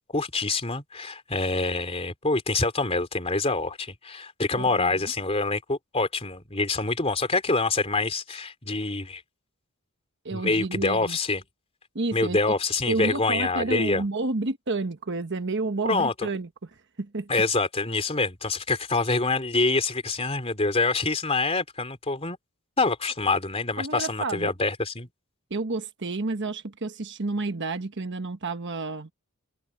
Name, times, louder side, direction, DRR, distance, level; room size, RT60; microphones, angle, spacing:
voice 1, 0.1-9.2 10.3-11.4 12.1-14.0 15.9-16.3 17.3-22.4 22.8-25.1, left 3 dB, 25° left, 3.6 m, -26 dB
voice 2, 4.5-5.1 10.2-11.2 11.9-12.5 12.9-16.5 17.0-17.3 23.8-24.5 25.5-29.1, right 3 dB, 55° right, 1.2 m, -30 dB
open air
head